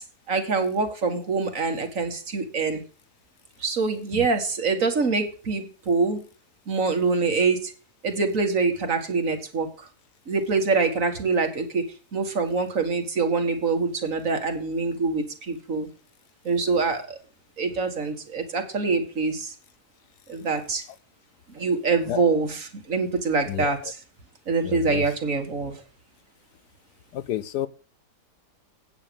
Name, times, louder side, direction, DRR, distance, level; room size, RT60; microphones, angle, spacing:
voice 1, 0.3-2.8 3.6-6.2 6.7-7.7 8.0-9.9 10.3-11.9 12.1-15.9 16.5-17.2 17.6-19.5 20.3-20.8 21.6-24.0 24.5-25.7, right 4 dB, 55° right, 6 dB, 2.1 m, -25 dB
voice 2, 24.6-25.1 27.1-27.7, left 11 dB, 80° left, 17 dB, 1.3 m, -30 dB
9.1 x 7.5 x 6.9 m, 0.37 s
omnidirectional pair, 1.7 m